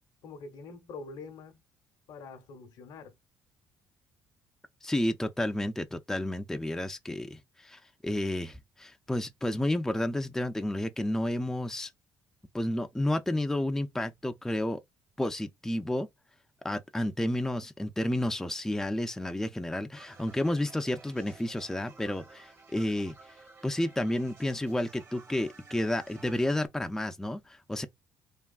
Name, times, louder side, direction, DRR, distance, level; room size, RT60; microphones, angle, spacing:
voice 1, 0.2-1.6 2.1-3.1, left 4 dB, 70° left, 0.8 m, -45 dB
voice 2, 4.8-11.9 12.5-14.8 15.2-16.1 16.6-23.2 23.6-27.9, left 1 dB, 5° left, 0.4 m, -31 dB
sound 1, 19.9-26.7, right 3 dB, 40° right, 1.3 m, -54 dB
3.5 x 2.3 x 2.3 m
supercardioid pair, 65°, 7 cm